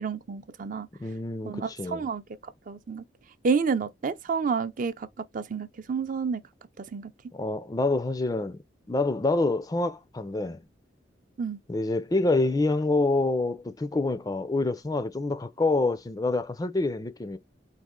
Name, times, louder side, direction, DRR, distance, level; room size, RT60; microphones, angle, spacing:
voice 1, 0.0-0.9 1.4-2.2 2.7-3.0 3.4-5.1 5.3-6.4 6.8-7.1 11.4-11.6, right 5 dB, 45° right, 0.4 m, -29 dB
voice 2, 1.0-2.1 7.3-8.6 8.9-10.6 11.7-17.4, left 2 dB, 20° left, 0.4 m, -27 dB
4.1 x 2.8 x 3.6 m
head